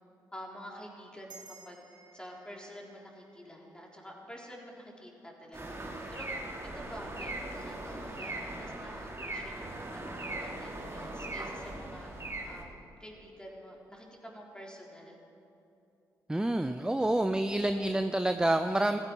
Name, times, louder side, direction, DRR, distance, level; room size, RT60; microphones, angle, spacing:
voice 1, 0.3-1.8 2.1-6.3 6.7-15.2, equal, 10° left, -1 dB, 3.6 m, -48 dB
sound 1, 1.3-6.0, right 5 dB, 55° right, 2.0 m, -58 dB
sound 2, 5.5-12.6, right 2 dB, 30° right, 2.9 m, -40 dB
voice 2, 16.3-19.0, right 1 dB, 10° right, 9 dB, 0.6 m, -28 dB
15.0 x 14.5 x 4.6 m, 2.8 s
hypercardioid pair, 40°, 9 cm